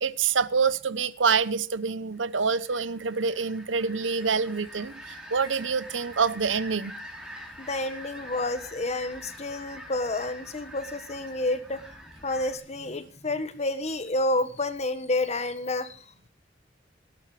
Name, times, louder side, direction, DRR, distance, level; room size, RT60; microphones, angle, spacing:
voice 1, 0.0-6.9, right 5 dB, 80° right, 0.8 m, -26 dB
sound 1, 2.2-12.6, equal, 5° right, 4.0 m, -45 dB
voice 2, 7.6-11.8 12.2-16.3, left 2 dB, 35° left, 1.5 m, -29 dB
18.0 x 12.0 x 3.3 m
head